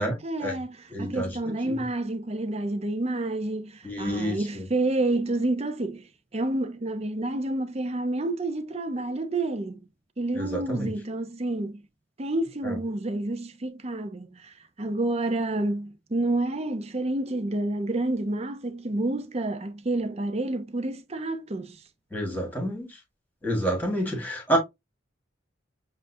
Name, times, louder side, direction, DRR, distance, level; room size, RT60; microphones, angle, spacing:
voice 1, 0.0-6.0 6.3-9.8 10.2-11.8 12.2-21.8, right 2 dB, 30° right, 0.6 m, -29 dB
voice 2, 0.9-1.4 1.6-1.7 3.8-4.6 10.4-10.9 12.6-12.8 22.1-22.9 23.4-24.6, right 1 dB, 10° left, 1.8 m, -28 dB
7.4 x 2.6 x 2.7 m
head